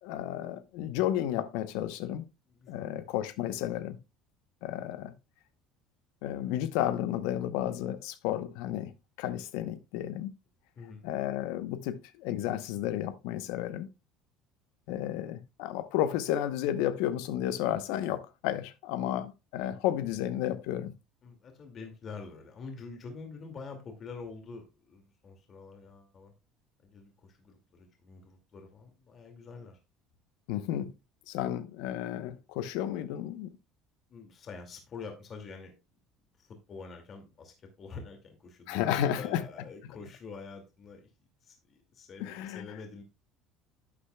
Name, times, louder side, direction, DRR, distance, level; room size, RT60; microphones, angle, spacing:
voice 1, 0.0-2.2 2.7-4.0 4.6-5.1 6.2-8.9 9.2-10.3 11.0-13.9 14.9-20.9 30.5-30.9 31.3-33.6 38.7-39.4 42.2-42.6, left 11 dB, 80° left, 0.9 m, -32 dB
voice 2, 2.5-3.0 6.2-6.6 10.8-11.1 15.1-15.3 21.2-26.3 26.8-29.8 34.1-35.7 36.4-41.1 41.4-43.0, left 4 dB, 40° left, 2.3 m, -46 dB
11.5 x 8.6 x 2.3 m
cardioid pair, 120°, 0 cm